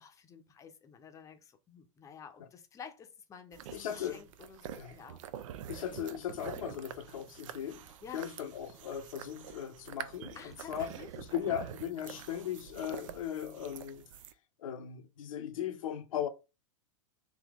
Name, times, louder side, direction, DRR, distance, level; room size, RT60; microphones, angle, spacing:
voice 1, 0.0-5.5 8.0-8.2 10.3-11.1 11.5-11.6, left 7 dB, 20° left, 0.7 m, -51 dB
sound 1, 3.5-14.3, right 10 dB, 70° right, 0.5 m, -47 dB
voice 2, 3.7-4.2 4.8-5.0 5.7-7.9 8.1-14.0 14.6-16.3, left 10 dB, 80° left, 0.8 m, -38 dB
3.6 x 2.8 x 3.5 m
hypercardioid pair, 135°, 17 cm